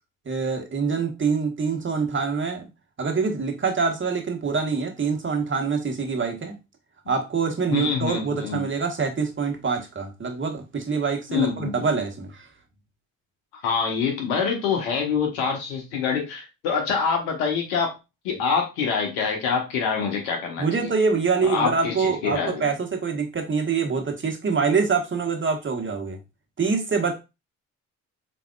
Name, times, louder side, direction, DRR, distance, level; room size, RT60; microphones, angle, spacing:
voice 1, 0.2-2.6 3.0-6.5 7.1-12.5 20.6-26.2 26.6-27.2, right 5 dB, 30° right, 3 dB, 1.2 m, -25 dB
voice 2, 7.7-8.6 11.3-11.8 13.6-17.9 18.2-20.9 21.4-22.6, left 6 dB, 80° left, 2 dB, 1.3 m, -25 dB
4.1 x 3.6 x 2.4 m, 0.26 s
hypercardioid pair, 50°, 41 cm